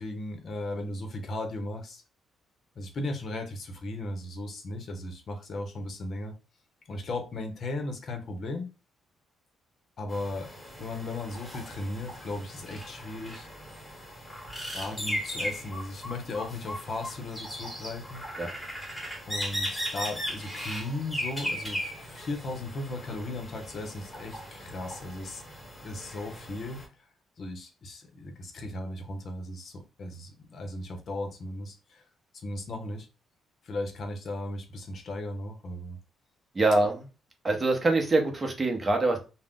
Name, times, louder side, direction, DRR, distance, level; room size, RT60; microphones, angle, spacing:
voice 1, 0.0-2.0 2.8-6.4 6.9-8.7 10.0-10.5 10.8-13.5 14.7-18.3 19.3-25.4 25.8-27.1 27.4-32.1 32.3-33.1 33.6-36.0, left 2 dB, 55° left, 0.7 m, -36 dB
sound 1, 10.1-26.9, equal, 10° left, 1.1 m, -38 dB
voice 2, 36.5-37.1 37.4-39.2, right 2 dB, 30° right, 0.7 m, -24 dB
2.4 x 2.0 x 3.5 m
cardioid pair, 90°, 0 cm